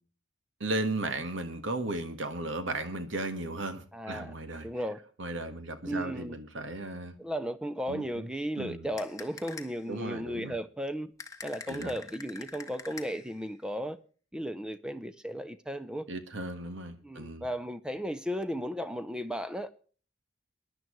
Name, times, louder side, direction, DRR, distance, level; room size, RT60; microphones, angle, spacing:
voice 1, 0.6-4.7 5.2-7.1 7.9-8.3 8.6-8.9 9.9-10.6 11.7-11.9 16.1-17.4, right 2 dB, 75° right, 1.6 m, -35 dB
voice 2, 3.9-4.3 4.6-5.0 5.9-6.4 7.2-11.1 11.4-14.0 14.3-16.1 17.0-19.7, equal, 5° right, 0.5 m, -35 dB
sound 1, 9.0-9.9 11.2-13.4, left 4 dB, 15° left, 1.2 m, -45 dB
22.0 x 10.5 x 3.1 m
head